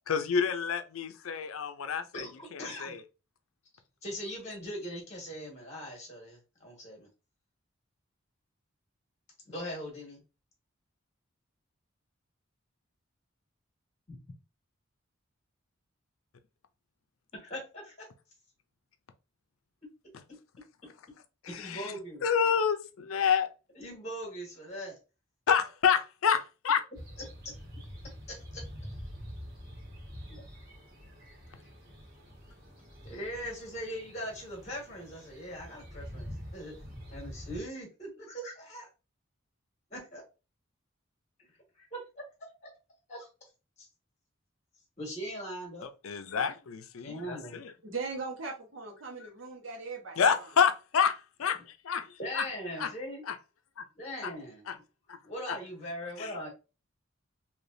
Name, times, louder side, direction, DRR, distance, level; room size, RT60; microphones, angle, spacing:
voice 1, 0.1-3.0 21.4-21.9 22.2-23.5 25.5-26.8 46.0-47.7 50.2-52.5 52.8-52.9 53.3-53.4 53.8-53.9 54.2-54.3 54.7-54.8 55.1-55.2 55.5-55.6 56.2-56.3, left 7 dB, 85° left, 0.5 m, -29 dB
voice 2, 2.1-3.0 4.0-7.1 9.4-10.2 14.1-14.2 17.3-18.1 21.5-22.3 23.7-25.0 27.4-27.5 28.3-28.6 30.3-30.4 33.0-36.7 37.1-38.9 39.9-40.2 41.8-42.2 42.6-42.7 43.1-43.3 43.8-43.9 45.0-45.9 47.0-47.6 52.2-53.2 53.9-54.6 55.2-56.5, equal, 35° left, 1.5 m, -40 dB
sound 1, 26.9-37.6, equal, 45° right, 1.6 m, -46 dB
voice 3, 47.8-50.5, right 4 dB, 65° right, 1.2 m, -39 dB
3.3 x 2.8 x 2.6 m
head